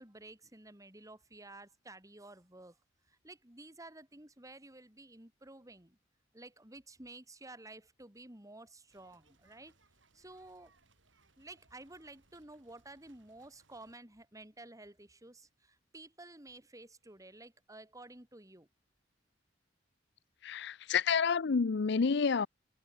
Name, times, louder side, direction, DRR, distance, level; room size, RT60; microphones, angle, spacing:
voice 1, 0.0-2.8 3.1-6.0 6.3-9.8 10.1-10.7 11.4-18.7, right 2 dB, 20° right, 3.3 m, -52 dB
sound 1, 8.9-14.0, right 3 dB, 80° right, 7.9 m, -70 dB
voice 2, 20.4-22.5, left 5 dB, 65° left, 0.5 m, -29 dB
head